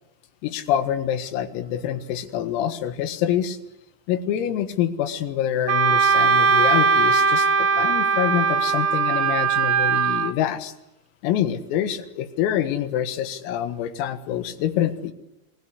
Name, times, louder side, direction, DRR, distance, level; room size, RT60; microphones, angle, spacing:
voice 1, 0.4-3.6 4.1-10.7 11.2-15.1, left 10 dB, 85° left, 10 dB, 4.3 m, -26 dB
Wind instrument woodwind instrument, 5.7-10.3, right 5 dB, 65° right, 2.1 m, -19 dB
28.0 x 20.0 x 8.3 m, 0.83 s
omnidirectional pair, 5.9 m